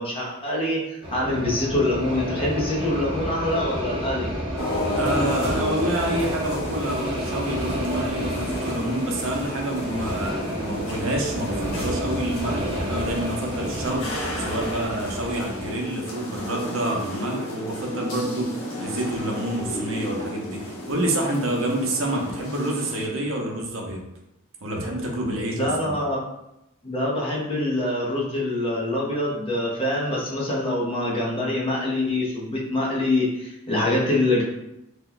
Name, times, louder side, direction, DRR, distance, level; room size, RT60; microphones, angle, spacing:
voice 1, 0.0-4.3 25.5-26.2 26.8-34.4, left 1 dB, 25° left, -4 dB, 0.7 m, -25 dB
sound 1, 1.0-15.7, equal, 25° right, 0.5 m, -31 dB
sound 2, 4.6-23.1, left 1 dB, 75° left, 0.8 m, -33 dB
voice 2, 4.9-24.0 24.6-25.9, right 1 dB, 65° right, 0 dB, 0.7 m, -28 dB
2.9 x 2.2 x 3.8 m, 0.87 s
head